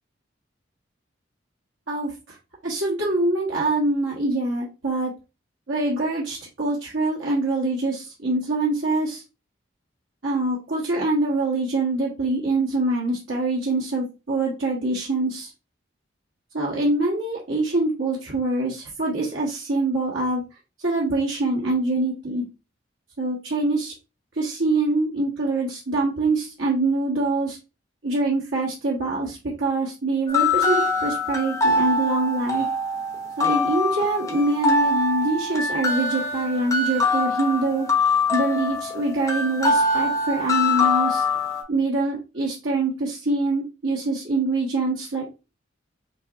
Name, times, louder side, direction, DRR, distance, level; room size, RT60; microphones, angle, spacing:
voice 1, 1.9-2.4 2.6-5.1 5.7-9.2 10.2-15.5 16.5-20.4 20.8-22.4 23.2-23.9 24.3-27.6 28.0-32.7 33.4-37.9 38.3-41.2 41.7-45.3, right 2 dB, 90° right, -4 dB, 1.2 m, -24 dB
sound 1, 30.3-41.6, left 3 dB, 15° left, 0.8 m, -23 dB
5.4 x 2.9 x 2.5 m, 0.29 s
head